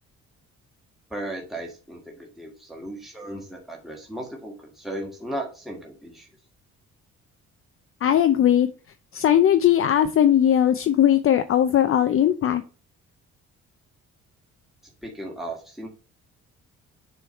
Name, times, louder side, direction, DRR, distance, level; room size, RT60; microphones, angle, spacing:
voice 1, 1.1-6.3 15.0-15.9, right 1 dB, ahead, -1 dB, 1.5 m, -36 dB
voice 2, 8.0-8.7 9.1-12.6, left 10 dB, 45° left, 9 dB, 0.5 m, -19 dB
7.0 x 3.2 x 4.2 m, 0.35 s
cardioid pair, 90°, 30 cm